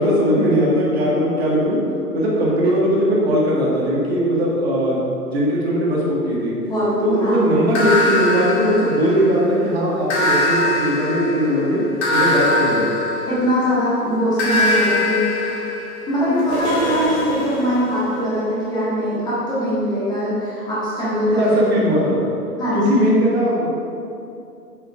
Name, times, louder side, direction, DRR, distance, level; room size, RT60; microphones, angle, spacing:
voice 1, 0.0-1.8 2.1-6.5 7.0-11.8 12.1-12.9 21.3-22.2 22.7-23.7, equal, 40° right, -5 dB, 1.7 m, -19 dB
voice 2, 6.7-7.4 13.3-15.6 16.1-22.0 22.6-23.1, equal, 10° left, -11 dB, 1.7 m, -21 dB
sound 1, 7.7-9.5 10.1-13.8 14.4-18.1, left 2 dB, 40° left, 1.9 m, -22 dB
7.5 x 5.7 x 4.7 m, 2.6 s
figure-of-eight pair, 125°, 49 cm